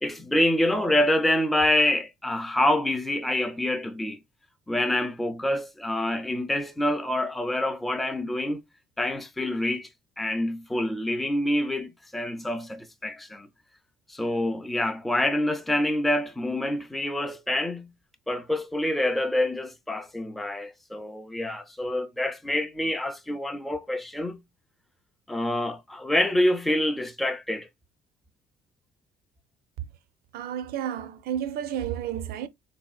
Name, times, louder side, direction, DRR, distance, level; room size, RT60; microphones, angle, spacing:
voice 1, 0.0-4.2 4.7-8.6 9.0-9.9 10.2-13.5 14.1-17.9 18.3-24.4 25.3-27.7, left 1 dB, ahead, 0.3 m, -26 dB
voice 2, 30.3-32.5, right 10 dB, 65° right, 0.4 m, -31 dB
3.7 x 2.7 x 2.2 m
cardioid pair, 110°, 17 cm